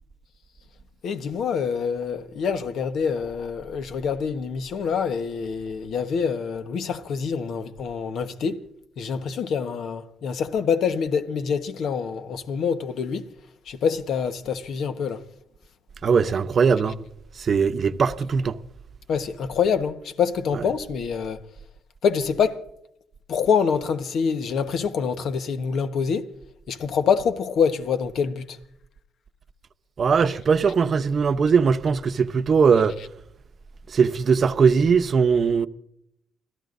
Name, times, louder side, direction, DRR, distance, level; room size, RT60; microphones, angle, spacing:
voice 1, 1.0-8.6 9.0-13.3 13.7-15.2 19.1-21.4 22.0-22.6 23.3-26.3 26.7-28.4, left 6 dB, 70° left, 1.3 m, -25 dB
voice 2, 16.0-16.9 17.4-18.5 20.5-20.6 30.0-32.9 33.9-35.7, right 5 dB, 50° right, 0.8 m, -20 dB
29.5 x 13.5 x 2.6 m
cardioid pair, 90°, 0 cm